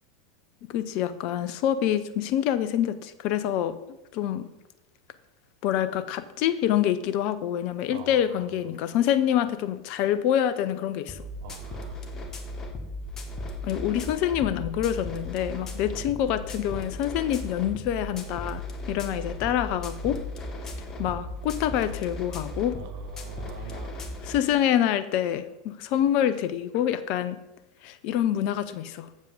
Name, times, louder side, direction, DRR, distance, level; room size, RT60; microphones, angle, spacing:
voice 1, 0.7-3.7 4.1-4.4 5.6-11.2 13.6-18.6 18.9-20.2 21.0-22.7 24.2-27.4 27.8-29.1, left 10 dB, 45° left, 13 dB, 0.5 m, -26 dB
voice 2, 7.9-8.4 8.7-8.8 11.4-12.1 22.8-24.1, right 9 dB, 50° right, 9 dB, 0.5 m, -44 dB
sound 1, 11.1-24.4, left 1 dB, 25° left, 1.2 m, -36 dB
7.4 x 7.4 x 5.0 m, 0.96 s
figure-of-eight pair, 85°, 2 cm